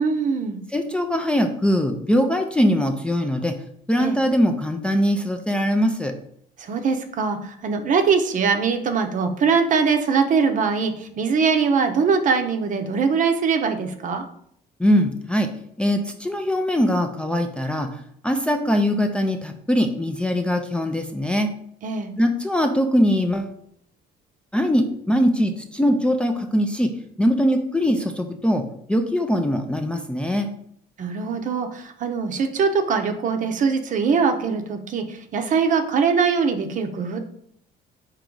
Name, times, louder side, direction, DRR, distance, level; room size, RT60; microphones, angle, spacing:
voice 1, 0.0-0.6 4.0-4.2 6.6-14.2 21.8-22.1 31.0-37.2, right 5 dB, 50° right, 6 dB, 0.7 m, -22 dB
voice 2, 0.7-3.6 3.9-6.1 14.8-15.5 15.8-21.5 22.2-23.5 24.5-26.9 27.2-28.6 28.9-30.5, equal, 5° left, 4 dB, 0.4 m, -21 dB
4.6 x 3.0 x 3.8 m, 0.69 s
cardioid pair, 110°, 17 cm